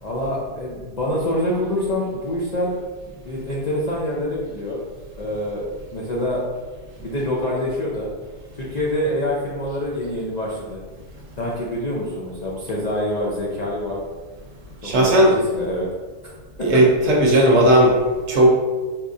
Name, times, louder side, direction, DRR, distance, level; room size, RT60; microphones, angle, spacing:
voice 1, 0.0-2.7 3.3-4.8 5.2-5.6 5.9-6.4 7.0-8.1 8.6-10.8 11.4-14.0 14.8-15.9 16.7-16.8 17.3-17.4, left 1 dB, 80° left, -5 dB, 0.3 m, -26 dB
voice 2, 14.8-15.3 16.6-17.9 18.3-18.5, right 1 dB, 60° right, -1 dB, 0.9 m, -15 dB
4.3 x 2.4 x 2.6 m, 1.4 s
omnidirectional pair, 1.5 m